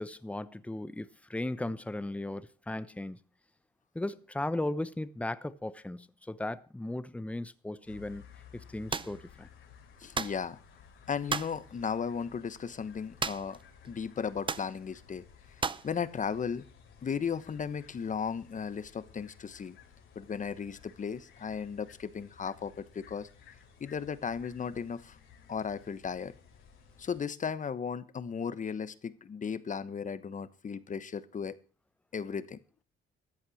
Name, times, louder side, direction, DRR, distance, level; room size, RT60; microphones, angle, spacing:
voice 1, 0.0-3.2 3.9-8.2 8.5-9.5, left 1 dB, 5° left, 0.8 m, -36 dB
sound 1, 7.9-27.2, left 7 dB, 85° left, 3.8 m, -57 dB
sound 2, 8.9-9.2 10.1-10.4 11.3-11.6 13.2-13.6 13.9-14.0 14.5-14.7 15.6-15.9, right 5 dB, 25° right, 0.6 m, -33 dB
voice 2, 10.0-10.6 11.1-13.6 13.8-15.2 15.8-16.6 17.0-19.8 20.1-23.3 23.8-25.2 25.5-26.3 27.0-31.5 32.1-32.6, left 6 dB, 40° left, 1.1 m, -35 dB
14.0 x 8.8 x 6.4 m
cardioid pair, 90°, 20 cm